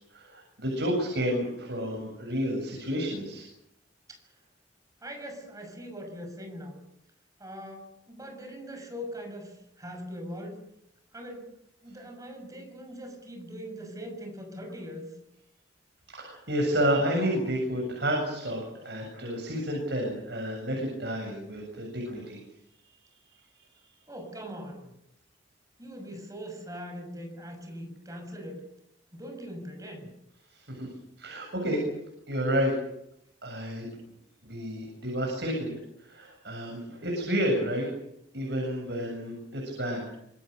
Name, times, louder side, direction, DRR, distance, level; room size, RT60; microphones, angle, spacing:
voice 1, 0.1-3.5 16.1-22.4 30.5-30.9 31.2-31.8 32.3-32.7 33.4-33.9 34.4-35.7 36.0-37.9 38.3-40.1, equal, 60° right, 1 dB, 7.6 m, -30 dB
voice 2, 5.0-6.8 7.4-10.6 11.1-11.5 11.8-15.1 24.1-24.9 25.8-28.7 29.1-30.1, equal, 20° right, 4 dB, 6.5 m, -41 dB
26.5 x 24.0 x 6.8 m, 0.79 s
head